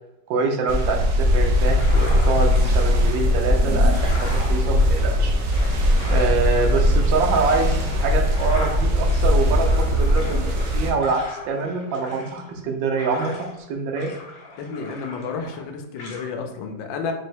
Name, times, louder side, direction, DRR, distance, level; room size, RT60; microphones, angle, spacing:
voice 1, 0.3-5.3 6.1-14.1, right 4 dB, 85° right, 4 dB, 1.4 m, -25 dB
sound 1, 0.7-10.9, left 1 dB, 65° right, 1.1 m, -20 dB
sound 2, 1.6-2.9 3.4-13.6 13.9-15.7 16.0-16.2, left 2 dB, 55° left, 1.3 m, -39 dB
voice 2, 14.6-17.1, left 5 dB, 85° left, 4 dB, 1.3 m, -31 dB
4.8 x 2.0 x 4.4 m, 0.88 s
omnidirectional pair, 2.0 m